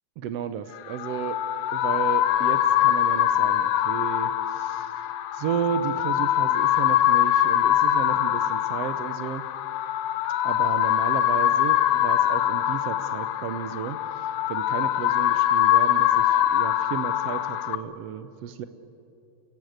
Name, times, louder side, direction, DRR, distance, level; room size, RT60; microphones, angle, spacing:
voice 1, 0.2-1.4 1.7-9.4 10.4-18.6, right 8 dB, 75° right, 11 dB, 1.5 m, -33 dB
sound 1, 0.8-17.8, left 12 dB, 85° left, 1.4 m, -23 dB
29.5 x 16.5 x 8.0 m, 2.7 s
omnidirectional pair, 3.7 m